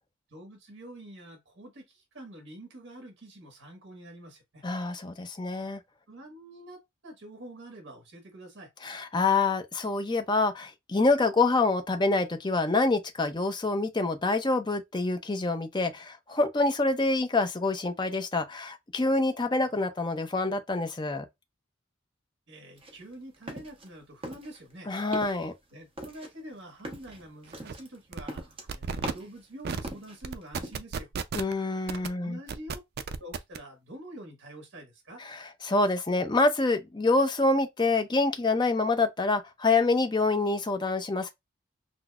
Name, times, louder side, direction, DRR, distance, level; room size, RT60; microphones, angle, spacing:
voice 1, 0.3-4.6 6.1-8.7 19.6-19.7 22.5-24.9 25.7-31.1 32.1-32.8 33.2-35.2, right 1 dB, 65° right, 1.5 m, -46 dB
voice 2, 4.6-5.8 8.8-21.3 24.9-25.5 31.3-32.4 35.6-41.3, left 3 dB, 20° left, 0.5 m, -26 dB
sound 1, 22.8-23.9 24.2-24.8 25.0-25.5 26.0-29.4 29.8-30.8, right 1 dB, 25° right, 0.9 m, -40 dB
sound 2, 27.1-27.2 27.5-27.7 28.1-28.4 28.7-29.1 29.6-29.9 30.2-31.5 31.9-32.1 32.5-33.6, right 5 dB, 50° right, 0.4 m, -34 dB
5.8 x 2.0 x 2.3 m
head